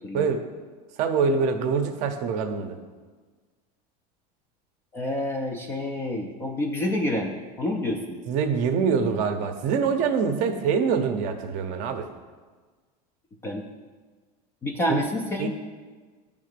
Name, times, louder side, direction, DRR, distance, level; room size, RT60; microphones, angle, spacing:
voice 1, 1.0-2.8 8.3-12.1 15.4-15.5, right 5 dB, 40° right, 7 dB, 0.6 m, -24 dB
voice 2, 4.9-8.2 13.4-13.6 14.6-15.5, left 1 dB, 10° left, 1 dB, 0.3 m, -28 dB
10.0 x 3.6 x 6.6 m, 1.4 s
supercardioid pair, 175°, 20 cm